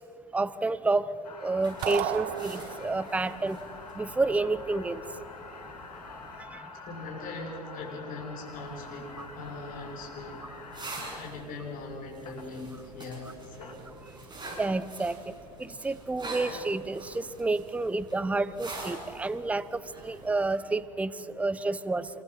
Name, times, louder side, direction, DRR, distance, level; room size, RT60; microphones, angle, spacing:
voice 1, 0.3-1.1 1.4-3.6 4.0-5.0 6.5-6.6 14.6-15.2 15.6-22.1, right 3 dB, 5° right, 16 dB, 0.7 m, -29 dB
sound 1, 1.2-11.2 12.3-12.4 13.3-13.7, left 4 dB, 90° left, 2.8 m, -46 dB
sound 2, 1.6-6.4 8.5-20.7, right 2 dB, 25° right, 7.4 m, -46 dB
sound 3, 1.8-3.1, right 12 dB, 55° right, 1.2 m, -33 dB
voice 2, 6.8-10.5 11.1-13.9, left 3 dB, 45° left, 0 dB, 6.3 m, -40 dB
27.0 x 23.0 x 5.7 m, 2.6 s
hypercardioid pair, 85°, 19 cm